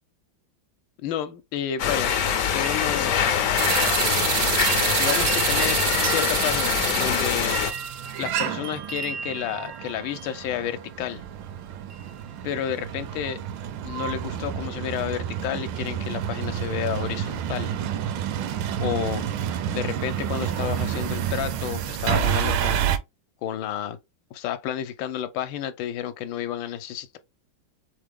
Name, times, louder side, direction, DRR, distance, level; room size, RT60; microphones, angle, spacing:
voice 1, 1.0-2.1 2.5-3.4 5.0-7.6 8.2-11.2 12.4-13.4 13.8-17.7 18.8-19.3 19.7-23.0 23.4-24.0 24.3-27.2, left 10 dB, 80° left, 1.3 m, -31 dB
sound 1, 1.8-7.7, left 8 dB, 65° left, 0.9 m, -24 dB
sound 2, 2.0-11.0 11.9-12.4 12.7-13.2 13.6-13.7, right 6 dB, 60° right, 0.8 m, -37 dB
sound 3, 3.6-23.0, right 10 dB, 75° right, 1.2 m, -29 dB
3.7 x 3.6 x 3.4 m
omnidirectional pair, 2.1 m